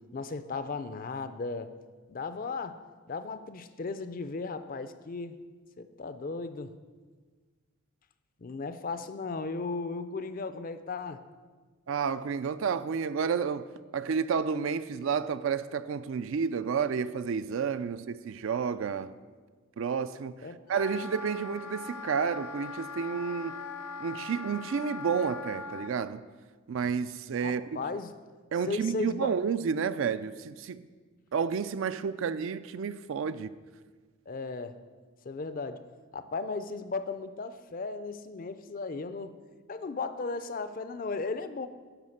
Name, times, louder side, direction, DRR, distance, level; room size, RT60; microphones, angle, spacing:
voice 1, 0.0-1.7 2.1-2.8 3.1-5.4 5.8-6.7 8.4-11.2 20.4-20.6 27.4-28.1 28.6-29.3 34.3-34.8 35.2-35.8 36.1-39.4 39.7-41.7, left 4 dB, 40° left, 0.4 m, -36 dB
voice 2, 11.9-13.7 13.9-19.1 19.8-20.4 20.7-23.6 24.0-26.3 26.7-27.6 28.5-30.8 31.3-33.5, right 6 dB, 60° right, 0.3 m, -30 dB
Wind instrument woodwind instrument, 20.7-25.9, left 4 dB, 90° left, 0.5 m, -41 dB
11.0 x 4.9 x 6.4 m
head